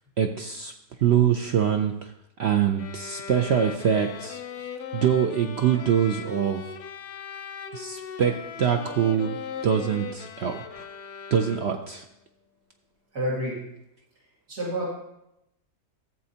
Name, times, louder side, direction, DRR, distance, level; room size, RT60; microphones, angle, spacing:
voice 1, 0.2-0.7 1.0-2.1 2.4-4.7 4.9-6.6 7.7-9.4 9.6-10.8 11.3-12.0, right 8 dB, 65° right, 5 dB, 0.6 m, -24 dB
sound 1, 2.8-12.0, left 7 dB, 85° left, 1.3 m, -39 dB
voice 2, 13.1-13.6 14.5-14.9, equal, 80° right, -7 dB, 3.0 m, -28 dB
14.0 x 7.6 x 2.8 m, 0.83 s
omnidirectional pair, 1.6 m